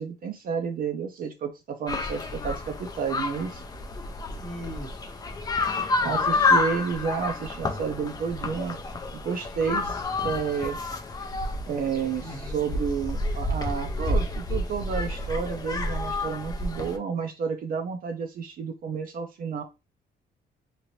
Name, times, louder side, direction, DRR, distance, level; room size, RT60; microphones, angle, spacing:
voice 1, 0.0-3.6 6.0-8.8 9.1-10.8 11.7-19.6, right 6 dB, 55° right, 4 dB, 0.5 m, -31 dB
sound 1, 1.9-17.0, left 2 dB, 20° left, 0.4 m, -29 dB
voice 2, 4.4-5.1 6.0-6.6 12.2-12.6, equal, ahead, -1 dB, 0.9 m, -40 dB
2.9 x 2.5 x 3.0 m, 0.25 s
cardioid pair, 175°, 18 cm